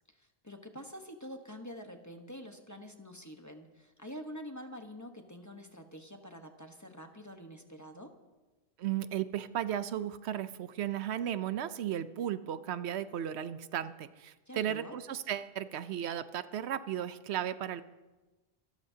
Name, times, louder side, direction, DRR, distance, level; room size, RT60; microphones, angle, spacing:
voice 1, 0.2-8.1 14.5-15.0, equal, 15° left, 4 dB, 1.1 m, -46 dB
voice 2, 8.8-17.8, right 10 dB, 80° right, 13 dB, 0.9 m, -35 dB
26.0 x 13.5 x 2.8 m, 1.2 s
omnidirectional pair, 1.1 m